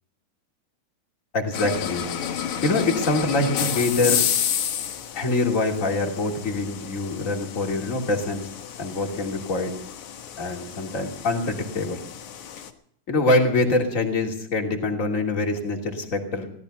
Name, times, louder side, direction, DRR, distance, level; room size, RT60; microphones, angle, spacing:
voice 1, 1.3-2.1 2.6-4.3 5.1-8.5 8.8-9.7 10.4-12.0 13.1-16.5, left 2 dB, 25° left, 2 dB, 3.0 m, -24 dB
sound 1, 1.5-12.7, left 9 dB, 70° left, 2.7 m, -31 dB
18.0 x 13.5 x 5.5 m, 0.68 s
omnidirectional pair, 3.5 m